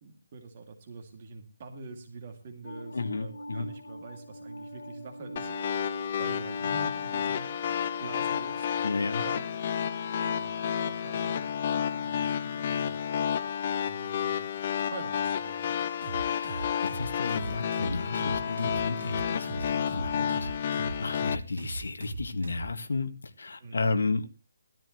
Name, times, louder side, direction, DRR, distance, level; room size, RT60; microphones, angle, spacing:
voice 1, 0.0-5.5 6.2-7.5 8.0-8.7 9.2-9.5 10.2-10.5 10.8-13.0 13.8-14.5 14.9-15.8 19.4-19.6 23.6-23.9, right 4 dB, 25° right, 3 dB, 2.4 m, -45 dB
sound 1, 2.6-9.2, equal, 80° left, 2.0 m, -45 dB
voice 2, 2.9-3.7 8.8-9.2 16.2-23.1 23.4-24.3, left 3 dB, 65° left, 8 dB, 1.9 m, -33 dB
sound 2, 5.4-21.4, left 8 dB, 25° left, 0.5 m, -31 dB
sound 3, 16.0-22.7, right 3 dB, 50° right, 3.7 m, -39 dB
16.0 x 13.5 x 3.1 m, 0.31 s
hypercardioid pair, 175°, 0 cm